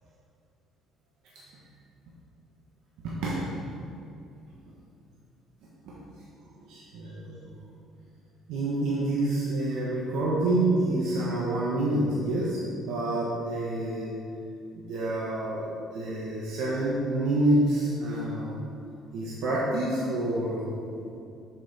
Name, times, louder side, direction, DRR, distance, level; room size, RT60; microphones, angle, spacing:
voice 1, 3.0-3.4 5.8-5.9 6.7-7.5 8.5-14.1 14.7-15.6 15.9-18.6 19.1-20.7 21.1-21.2, right 1 dB, 80° right, -6 dB, 1.2 m, -27 dB
7.2 x 5.6 x 4.2 m, 2.5 s
cardioid pair, 135°, 0 cm